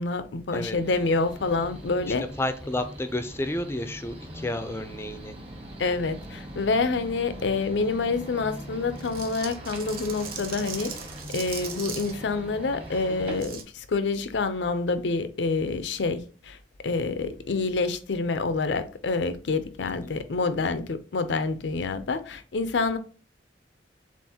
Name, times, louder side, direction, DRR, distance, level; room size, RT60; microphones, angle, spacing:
voice 1, 0.0-2.2 5.8-10.9 11.3-16.6 16.8-23.0, left 3 dB, 75° left, 0.6 m, -27 dB
sound 1, 0.7-13.4, equal, 30° right, 1.2 m, -41 dB
voice 2, 2.4-5.3 19.8-20.1, left 1 dB, 15° left, 0.4 m, -31 dB
sound 2, 9.0-12.1 13.3-13.6, right 6 dB, 55° right, 0.8 m, -39 dB
7.1 x 2.5 x 2.8 m
head